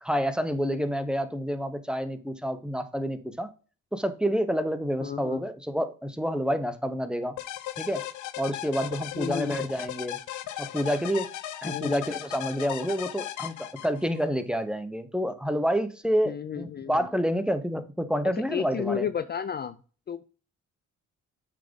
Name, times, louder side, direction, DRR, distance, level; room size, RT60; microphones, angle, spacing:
voice 1, 0.0-3.5 3.9-7.3 7.8-8.0 8.4-10.2 10.6-11.3 11.6-19.1, equal, 5° right, 0.8 m, -28 dB
voice 2, 5.0-5.4 9.1-9.6 11.7-12.0 16.2-17.1 18.5-19.8 20.1-20.3, left 8 dB, 35° left, 0.4 m, -32 dB
sound 1, 7.4-14.2, left 13 dB, 75° left, 0.7 m, -37 dB
7.7 x 3.6 x 5.2 m
cardioid pair, 90°, 30 cm